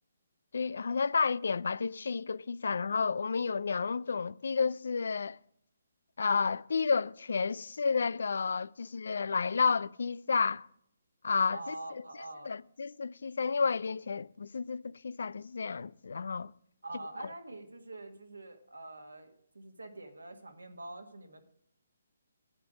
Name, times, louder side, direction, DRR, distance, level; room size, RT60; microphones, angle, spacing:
voice 1, 0.5-5.4 6.2-10.7 11.2-12.0 12.4-16.5 17.2-17.3, left 5 dB, 65° left, 0.4 m, -31 dB
voice 2, 11.5-12.5 16.8-21.4, right 2 dB, 85° right, 1.5 m, -45 dB
11.5 x 8.6 x 5.0 m
figure-of-eight pair, 140°, 0 cm